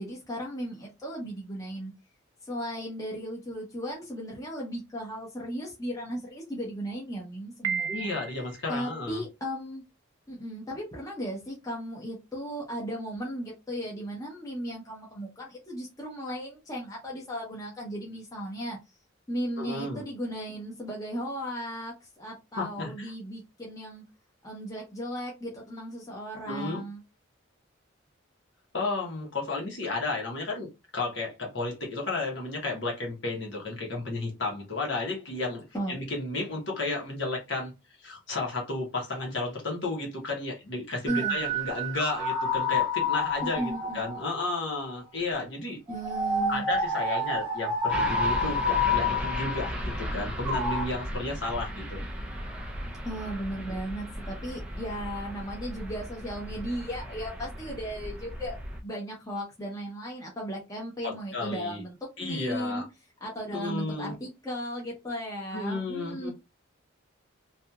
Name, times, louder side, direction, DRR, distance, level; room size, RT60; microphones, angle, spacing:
voice 1, 0.0-1.9 2.5-8.1 8.7-9.8 10.3-18.8 19.3-24.0 24.4-27.0 35.7-36.0 41.1-41.4 43.4-44.0 45.9-46.6 53.0-58.6 58.8-62.9 63.2-66.3, equal, 15° left, 0.9 m, -36 dB
Piano, 7.6-8.7, right 7 dB, 70° right, 0.4 m, -33 dB
voice 2, 7.9-9.2 19.6-20.0 22.6-23.1 26.4-26.8 28.7-30.7 30.9-37.7 38.0-45.8 46.5-52.0 61.0-61.8 62.2-62.8 63.5-64.1 65.5-66.3, left 3 dB, 60° left, 1.1 m, -33 dB
sound 1, 41.1-44.9 45.9-50.9, left 2 dB, 20° right, 0.9 m, -29 dB
sound 2, 47.9-58.8, equal, 5° right, 0.4 m, -36 dB
2.8 x 2.6 x 2.2 m
head